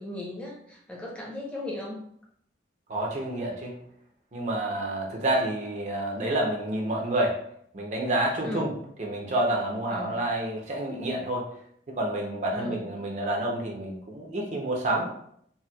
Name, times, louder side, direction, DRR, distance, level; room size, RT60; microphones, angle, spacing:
voice 1, 0.0-2.0 8.4-8.7 9.9-10.1 12.5-12.8, left 1 dB, 5° left, -3 dB, 0.7 m, -36 dB
voice 2, 2.9-3.7 4.3-7.4 7.7-8.7 9.0-11.5 12.0-15.1, right 1 dB, 40° right, -1 dB, 0.6 m, -28 dB
4.1 x 2.2 x 2.3 m, 0.66 s
head